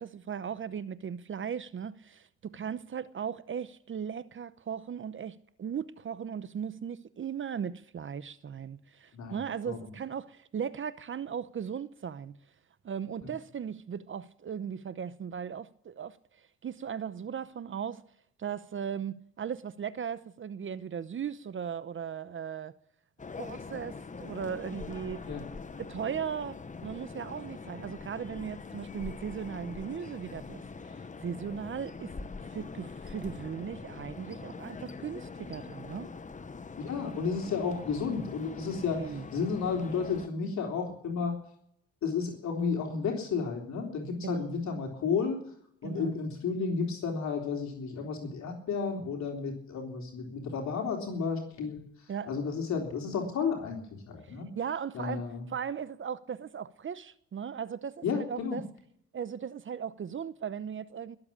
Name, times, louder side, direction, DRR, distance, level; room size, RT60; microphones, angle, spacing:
voice 1, 0.0-12.4 12.8-16.2 16.6-18.0 18.4-22.7 23.4-25.2 25.8-32.1 32.5-36.1 38.8-39.3 44.2-44.6 45.8-46.2 52.1-52.3 54.3-55.2 55.5-58.6 59.1-61.2, right 7 dB, 40° right, 0.8 m, -37 dB
sound 1, 23.2-40.3, left 4 dB, 25° left, 1.1 m, -43 dB
voice 2, 36.8-41.4 42.0-45.4 45.8-51.8 52.3-54.5 54.9-55.5 58.0-58.6, left 5 dB, 65° left, 3.6 m, -32 dB
21.0 x 7.8 x 8.6 m
cardioid pair, 90°, 30 cm